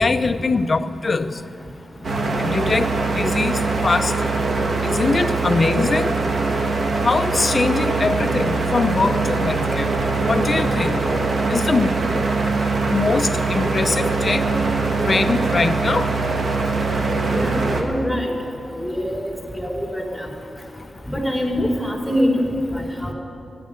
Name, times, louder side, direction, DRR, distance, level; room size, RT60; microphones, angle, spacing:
voice 1, 0.0-1.3 2.4-4.3 4.8-6.1 7.0-9.9 10.2-11.0 11.5-11.9 12.9-14.5 15.0-16.1, left 3 dB, 50° left, 11 dB, 0.7 m, -22 dB
sound 1, 2.0-17.8, right 3 dB, 70° right, 1.7 m, -22 dB
voice 2, 17.3-18.3 18.8-20.3 21.1-22.4 22.7-23.1, equal, 5° right, -1 dB, 4.3 m, -24 dB
13.5 x 10.0 x 9.2 m, 2.7 s
cardioid pair, 45°, 0 cm